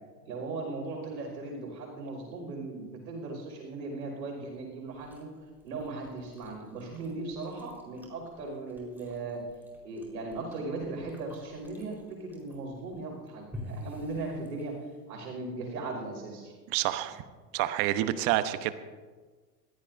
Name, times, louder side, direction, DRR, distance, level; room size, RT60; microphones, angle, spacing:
voice 1, 0.2-5.3 5.6-9.4 9.8-14.7 15.1-16.5, right 3 dB, 80° right, 1 dB, 5.3 m, -38 dB
Chewing mastication, 4.9-15.0, left 1 dB, 5° right, 4.2 m, -50 dB
voice 2, 16.7-17.2 17.5-18.7, right 14 dB, 45° right, 12 dB, 1.0 m, -28 dB
21.0 x 15.5 x 2.6 m, 1.4 s
hypercardioid pair, 100°, 49 cm